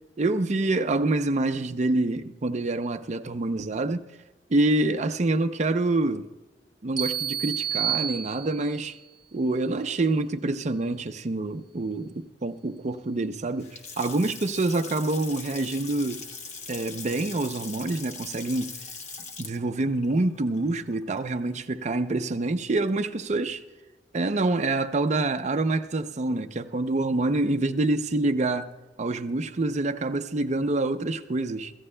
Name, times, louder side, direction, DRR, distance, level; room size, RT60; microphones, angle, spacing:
voice 1, 0.2-4.1 4.5-6.3 6.8-9.0 9.3-16.2 16.7-18.7 19.4-23.6 24.1-28.7 29.0-31.7, right 2 dB, 40° right, 0.5 m, -26 dB
sound 1, 7.0-8.9, right 9 dB, 25° right, 1.5 m, -30 dB
Water tap faucet / Sink (filling or washing) / Splash splatter, 13.6-21.6, left 4 dB, 40° left, 1.1 m, -41 dB
26.0 x 14.5 x 2.2 m
head